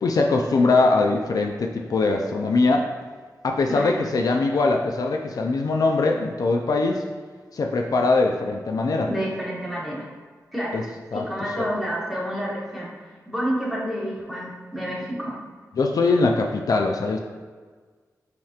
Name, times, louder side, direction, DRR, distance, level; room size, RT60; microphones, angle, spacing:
voice 1, 0.0-2.9 3.4-7.0 7.5-9.1 10.7-10.8 11.1-11.3 11.6-11.7 15.8-17.2, left 3 dB, 70° left, 2 dB, 0.4 m, -22 dB
voice 2, 3.7-4.0 9.1-10.1 10.5-10.8 11.1-12.9 13.3-15.4, equal, ahead, -5 dB, 1.2 m, -29 dB
7.3 x 2.9 x 2.4 m, 1.5 s
wide cardioid pair, 100°, 7 cm